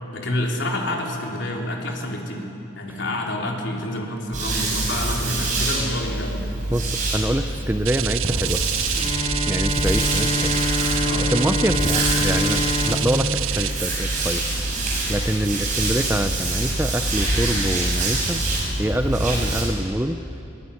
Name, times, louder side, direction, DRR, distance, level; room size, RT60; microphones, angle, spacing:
voice 1, 0.1-2.5 2.8-6.4 11.0-11.3, left 1 dB, 60° left, 0 dB, 3.6 m, -28 dB
sound 1, 4.3-19.6, right 2 dB, 40° right, 6.6 m, -25 dB
voice 2, 6.7-8.6 9.5-10.6 11.3-14.8 15.1-18.4 18.8-20.2, right 1 dB, 10° right, 8 dB, 0.5 m, -25 dB
sound 2, 7.8-13.7, right 15 dB, 75° right, 0.5 m, -27 dB
Bowed string instrument, 8.9-14.6, left 3 dB, 25° left, 0.7 m, -27 dB
22.5 x 18.5 x 9.8 m, 2.8 s
head